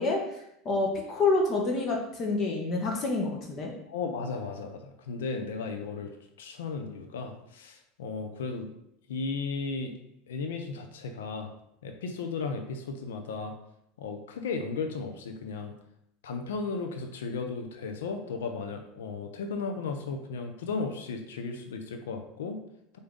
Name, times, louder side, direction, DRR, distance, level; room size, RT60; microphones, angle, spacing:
voice 1, 0.0-3.7, left 3 dB, 45° left, 1 dB, 0.9 m, -28 dB
voice 2, 3.9-6.1 6.4-8.7 9.1-9.9 10.3-11.5 11.8-13.5 14.0-15.7 16.2-22.6, left 4 dB, 85° left, 5 dB, 0.5 m, -35 dB
4.7 x 2.6 x 3.6 m, 0.77 s
hypercardioid pair, 90°, 0 cm